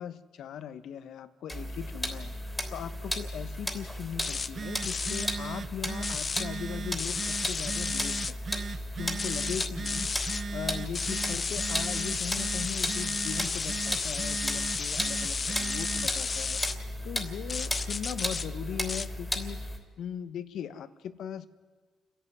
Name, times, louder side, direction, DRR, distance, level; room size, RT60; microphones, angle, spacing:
voice 1, 0.0-10.1 10.5-19.7 20.0-21.5, left 9 dB, 75° left, 13 dB, 1.0 m, -39 dB
sound 1, 1.5-19.8, equal, ahead, 3.2 m, -35 dB
sound 2, 4.2-4.5 4.8-5.3 6.0-6.5 7.0-8.3 9.2-10.4 10.9-16.8 17.5-18.5 18.9-19.1, left 5 dB, 35° left, 0.6 m, -33 dB
Telephone, 4.3-16.2, right 5 dB, 45° right, 0.6 m, -39 dB
29.0 x 11.5 x 9.6 m, 1.4 s
cardioid pair, 90°, 0 cm